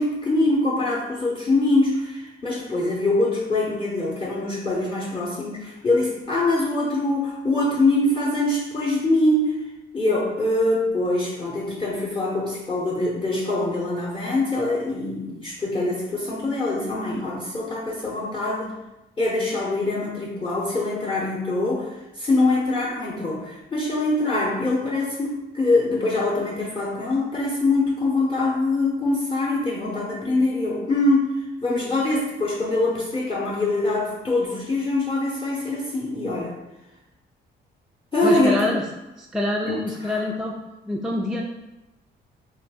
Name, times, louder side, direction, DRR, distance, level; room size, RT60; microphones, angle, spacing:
voice 1, 0.0-9.5 9.9-18.7 19.2-21.9 22.2-31.3 31.6-36.6 38.1-38.7 39.6-40.2, left 2 dB, 25° left, -6 dB, 0.7 m, -23 dB
voice 2, 38.2-38.8 39.2-40.6 40.9-41.4, left 2 dB, 5° right, -1 dB, 0.3 m, -25 dB
2.6 x 2.4 x 3.5 m, 0.99 s
cardioid pair, 90°, 20 cm